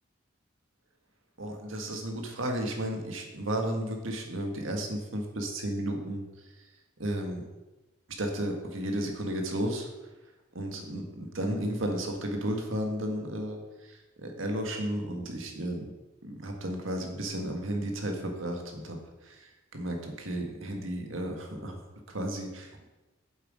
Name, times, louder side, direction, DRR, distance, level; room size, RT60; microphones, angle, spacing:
voice 1, 1.4-6.2 7.0-7.4 8.2-9.9 10.5-15.9 16.2-21.8 22.1-22.8, right 1 dB, 85° right, 3 dB, 1.7 m, -33 dB
8.1 x 7.7 x 5.0 m, 1.1 s
head